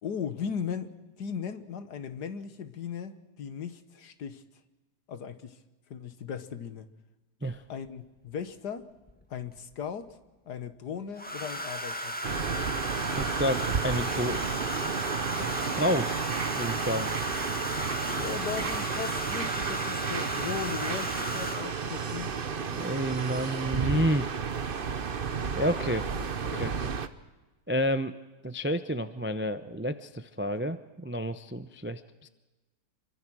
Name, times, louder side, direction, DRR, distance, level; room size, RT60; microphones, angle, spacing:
voice 1, 0.0-0.9 1.2-4.4 5.1-5.6 5.9-6.9 7.7-8.9 9.3-10.2 10.5-12.2 18.1-22.3 26.1-26.8, left 7 dB, 70° left, 11 dB, 1.8 m, -37 dB
Domestic sounds home sounds, 9.1-9.7 11.2-21.9 23.1-23.4 23.7-24.0, equal, 5° left, 1.9 m, -35 dB
sound 1, 12.2-27.1, right 6 dB, 40° right, 1.0 m, -32 dB
voice 2, 13.2-14.5 15.4-16.2 16.6-17.1 22.8-24.3 25.5-26.1 26.4-26.9 27.7-28.1 28.4-32.3, equal, 15° right, 11 dB, 0.4 m, -30 dB
27.5 x 23.5 x 6.3 m, 1.1 s
omnidirectional pair, 1.8 m